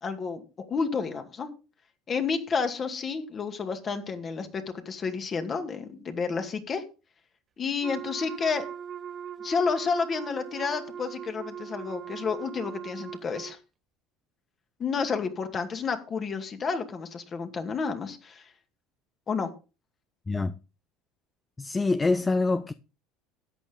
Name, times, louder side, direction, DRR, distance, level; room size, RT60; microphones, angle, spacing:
voice 1, 0.0-1.5 2.1-6.8 7.6-8.6 9.4-13.6 14.8-18.5 19.3-19.5, left 5 dB, 35° left, 2.4 m, -30 dB
Wind instrument woodwind instrument, 7.8-13.6, right 8 dB, 40° right, 0.6 m, -40 dB
voice 2, 21.6-22.7, left 3 dB, 20° left, 0.6 m, -25 dB
13.5 x 9.1 x 3.8 m
supercardioid pair, 90°, 0 cm